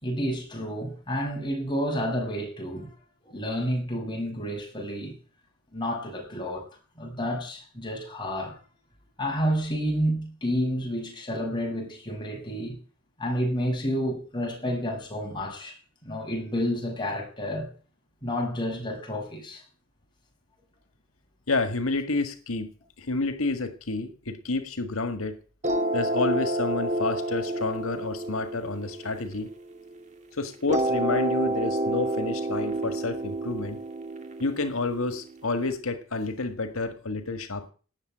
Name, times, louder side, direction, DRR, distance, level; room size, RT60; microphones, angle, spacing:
voice 1, 0.0-2.9 3.2-5.1 5.7-6.7 7.0-8.6 9.2-12.8 13.2-17.7 18.2-19.6, equal, 20° left, 6.1 m, -30 dB
voice 2, 21.5-22.7 23.0-25.4 25.9-29.5 30.4-33.8 34.4-37.7, left 3 dB, 90° left, 1.7 m, -29 dB
sound 1, 25.6-30.0 30.7-35.6, right 1 dB, 35° right, 2.2 m, -29 dB
18.5 x 7.1 x 9.8 m
head